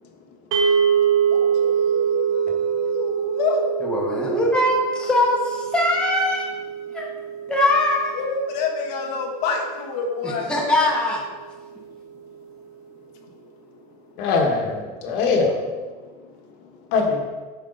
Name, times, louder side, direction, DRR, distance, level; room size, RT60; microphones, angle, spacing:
sound 1, 0.5-10.8, right 7 dB, 70° right, 0.9 m, -25 dB
voice 1, 1.3-3.6 8.1-10.5, left 4 dB, 85° left, 2 dB, 1.3 m, -27 dB
voice 2, 3.8-6.5 6.9-7.1 7.5-8.2 10.2-11.2, left 1 dB, 5° left, -3 dB, 1.1 m, -21 dB
voice 3, 14.2-15.5 16.9-17.3, left 4 dB, 60° left, 2 dB, 1.4 m, -21 dB
8.2 x 5.3 x 3.9 m, 1.4 s
cardioid pair, 160°, 20 cm